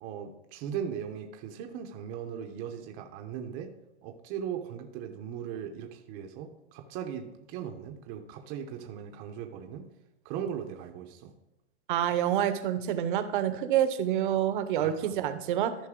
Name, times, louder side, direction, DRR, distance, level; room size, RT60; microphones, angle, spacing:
voice 1, 0.0-3.7 4.0-9.9 10.2-11.3 14.8-15.1, right 8 dB, 25° right, 4 dB, 0.8 m, -38 dB
voice 2, 11.9-15.8, right 10 dB, 50° right, 10 dB, 0.9 m, -27 dB
13.5 x 5.5 x 3.7 m, 0.91 s
hypercardioid pair, 155°, 34 cm